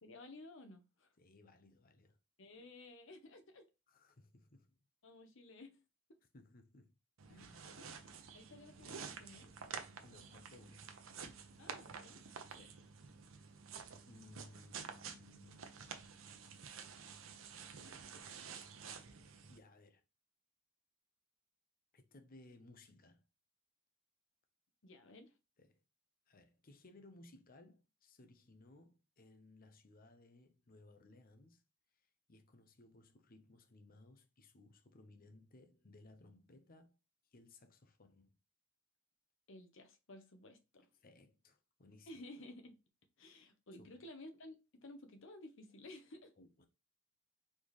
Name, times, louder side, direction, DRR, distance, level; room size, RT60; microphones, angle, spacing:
voice 1, 0.0-1.1 2.4-3.7 5.0-5.8 7.9-8.1 8.3-9.5 11.6-12.2 24.8-25.3 39.5-40.9 42.1-42.7 43.2-46.3, left 1 dB, 65° left, 1.0 m, -55 dB
voice 2, 1.2-2.2 3.9-4.8 6.3-7.0 7.3-7.8 10.0-10.9 12.5-12.8 14.1-16.1 19.5-20.0 21.9-23.3 25.6-25.8 26.3-31.6 32.3-37.0 37.3-38.4 41.0-42.2 43.8-44.0 46.4-46.7, left 2 dB, 45° left, 0.8 m, -62 dB
sound 1, 7.2-19.6, right 6 dB, 75° right, 0.7 m, -50 dB
4.4 x 3.5 x 3.0 m
head